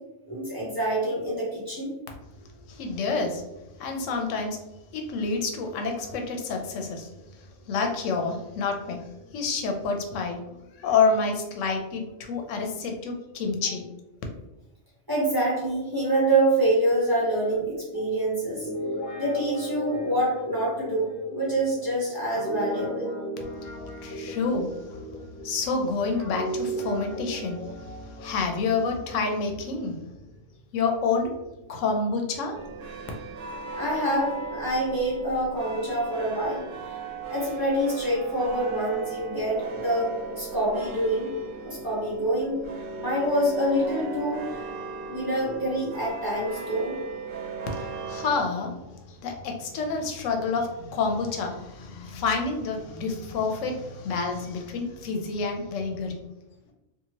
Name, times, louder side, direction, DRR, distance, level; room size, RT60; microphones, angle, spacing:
voice 1, 0.3-1.9 15.1-18.7 19.1-23.1 33.7-36.6 36.9-37.0 37.3-42.6 43.0-44.7 45.1-47.0, right 1 dB, 20° right, -7 dB, 0.8 m, -26 dB
voice 2, 2.7-3.4 3.8-4.6 4.9-7.1 7.7-9.0 9.3-10.4 10.8-13.9 23.4-25.0 25.4-30.0 30.7-31.3 31.7-32.6 47.7-56.2, left 4 dB, 90° left, 3 dB, 0.9 m, -28 dB
Guitar, 18.5-25.7 26.1-29.8, right 1 dB, 55° left, 1.0 m, -36 dB
sound 1, 32.5-48.4, right 4 dB, 90° right, 0.9 m, -37 dB
2.8 x 2.3 x 2.8 m, 0.96 s
omnidirectional pair, 1.3 m